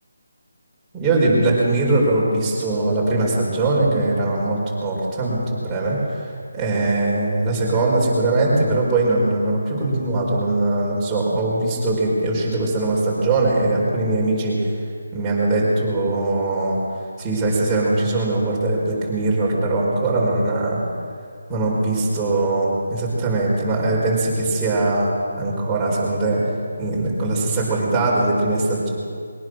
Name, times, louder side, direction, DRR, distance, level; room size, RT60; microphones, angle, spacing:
voice 1, 0.9-14.6 15.1-16.8 17.2-20.8 21.5-25.1 25.4-26.4 26.8-28.9, right 2 dB, 10° right, -6 dB, 4.7 m, -21 dB
22.0 x 19.5 x 6.4 m, 2.2 s
hypercardioid pair, 170°, 0 cm